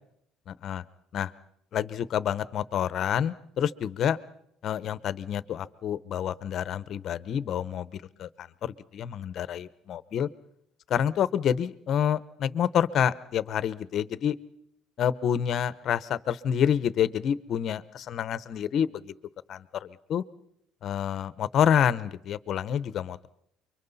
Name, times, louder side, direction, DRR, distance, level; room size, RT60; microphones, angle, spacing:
voice 1, 0.5-0.8 1.1-1.3 1.7-4.2 4.6-10.3 10.9-14.4 15.0-19.1 19.5-20.2 20.8-23.3, left 9 dB, 45° left, 16 dB, 0.8 m, -28 dB
29.5 x 24.0 x 4.1 m, 0.73 s
cardioid pair, 145°, 0 cm